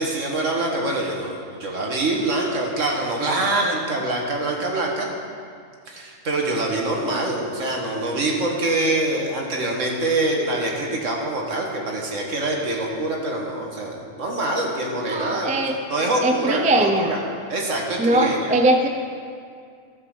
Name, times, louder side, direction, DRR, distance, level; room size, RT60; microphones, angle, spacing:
voice 1, 0.0-5.1 5.9-15.6 15.9-17.2 17.5-18.5, right 2 dB, 70° right, 0 dB, 1.8 m, -25 dB
voice 2, 15.1-15.8 16.2-17.1 18.0-18.9, right 1 dB, 10° right, 4 dB, 0.3 m, -20 dB
14.0 x 5.4 x 6.5 m, 2.2 s
omnidirectional pair, 1.4 m